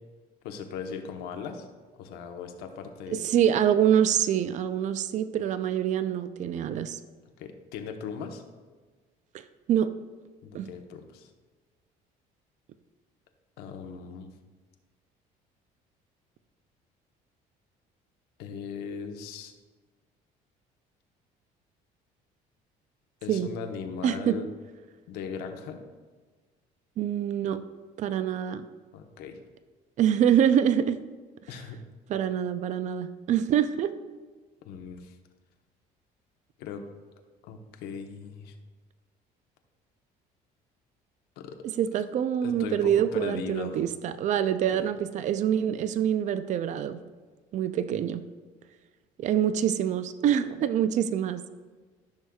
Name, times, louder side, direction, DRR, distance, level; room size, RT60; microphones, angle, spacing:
voice 1, 0.4-1.7 2.0-3.3 7.4-8.4 10.4-11.3 13.6-14.3 18.4-19.5 23.2-24.5 25.1-25.8 28.9-29.4 31.5-31.8 34.6-35.2 36.6-36.9 37.4-38.6 41.4-41.6 42.4-43.8 44.7-44.9, left 6 dB, 85° left, 5 dB, 1.0 m, -38 dB
voice 2, 3.1-7.0 9.7-9.9 10.5-10.7 23.3-23.5 24.0-24.4 27.0-27.6 28.0-28.7 30.0-31.0 32.1-33.9 41.6-47.0 47.5-48.2 49.2-51.5, right 9 dB, 50° right, 12 dB, 0.5 m, -25 dB
14.0 x 6.3 x 2.3 m, 1.4 s
cardioid pair, 125°, 16 cm